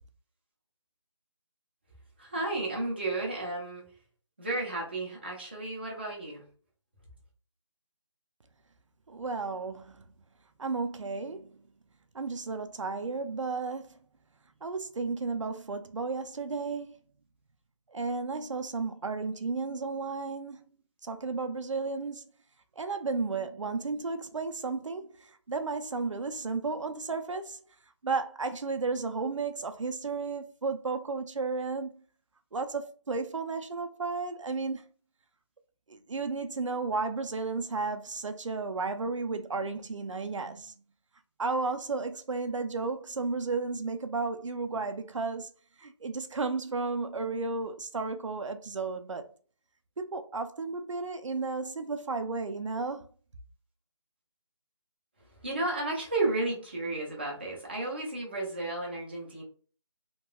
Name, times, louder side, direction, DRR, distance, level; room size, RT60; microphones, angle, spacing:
voice 1, 2.2-3.9 4.4-6.4 55.4-59.4, right 2 dB, 20° right, 0.7 m, -33 dB
voice 2, 9.1-10.0 10.6-11.5 12.1-14.0 14.6-17.0 17.9-20.6 21.0-22.2 22.8-27.6 28.0-31.9 32.5-34.8 35.9-40.7 41.4-45.5 45.8-49.3 50.0-53.1, right 4 dB, 80° right, 0.5 m, -33 dB
3.0 x 2.9 x 2.3 m
figure-of-eight pair, 175°, 16 cm